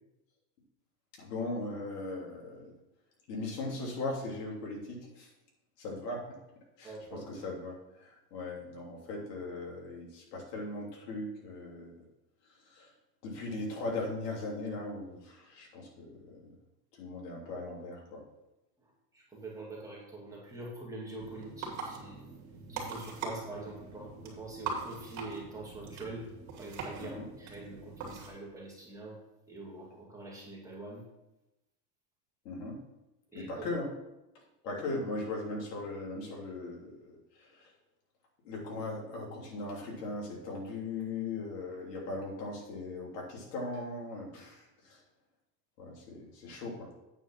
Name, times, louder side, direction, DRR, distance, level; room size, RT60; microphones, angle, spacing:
voice 1, 1.2-2.7 3.3-5.3 5.8-6.4 6.8-11.9 12.6-12.9 13.2-16.5 17.0-18.2 27.0-27.2 32.4-32.8 33.3-33.9 34.6-37.7 38.4-45.0 45.8-46.9, left 2 dB, 90° left, -2 dB, 3.3 m, -39 dB
voice 2, 6.8-7.4 18.8-22.3 22.7-26.3 26.6-29.2 29.5-31.0 33.3-33.5, right 2 dB, 5° right, -4 dB, 2.0 m, -44 dB
sound 1, 21.2-28.3, right 4 dB, 35° right, 2.6 m, -42 dB
8.8 x 4.8 x 5.9 m, 0.93 s
supercardioid pair, 150°, 47 cm